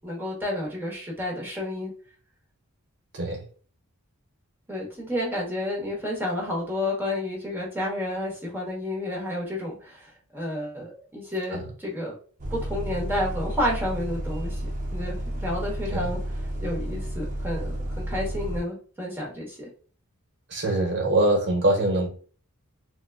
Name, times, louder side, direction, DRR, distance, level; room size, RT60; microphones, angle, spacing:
voice 1, 0.0-1.9 4.7-12.1 12.5-16.2 16.6-19.7, left 1 dB, 10° right, -3 dB, 1.1 m, -31 dB
Bus, 12.4-18.6, right 1 dB, 35° right, 0.6 m, -31 dB
voice 2, 20.5-22.1, right 1 dB, 55° right, 0 dB, 1.1 m, -23 dB
3.8 x 2.3 x 2.3 m, 0.42 s
head